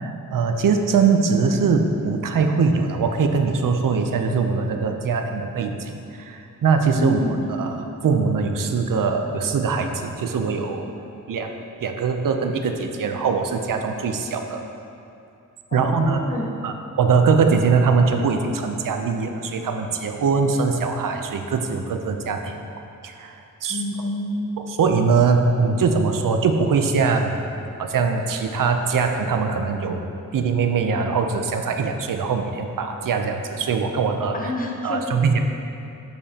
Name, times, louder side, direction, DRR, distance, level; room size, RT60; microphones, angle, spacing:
voice 1, 0.0-7.2 7.6-7.8 8.0-10.9 11.3-14.6 15.7-16.2 16.6-22.6 23.0-23.4 23.6-23.8 24.8-27.4 27.8-30.0 30.3-34.3 34.8-35.4, right 5 dB, 85° right, 5 dB, 0.6 m, -22 dB
voice 2, 7.0-7.5 15.7-16.5 23.7-24.7 34.3-35.4, left 2 dB, 25° left, 0 dB, 0.8 m, -28 dB
8.0 x 6.8 x 2.8 m, 2.7 s
wide cardioid pair, 145°, 32 cm